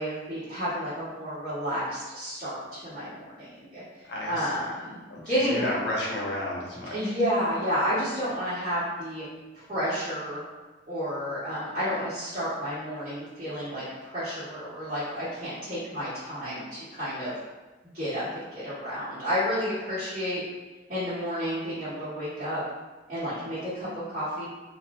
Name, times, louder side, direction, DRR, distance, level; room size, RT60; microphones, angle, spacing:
voice 1, 0.0-5.6 6.9-9.2 9.5-10.4 10.9-17.3 17.8-20.4 20.9-22.6 23.1-24.4, equal, 40° right, -16 dB, 1.3 m, -31 dB
voice 2, 4.1-4.7 5.1-7.2, left 1 dB, 70° left, -4 dB, 0.7 m, -32 dB
2.5 x 2.1 x 2.9 m, 1.2 s
head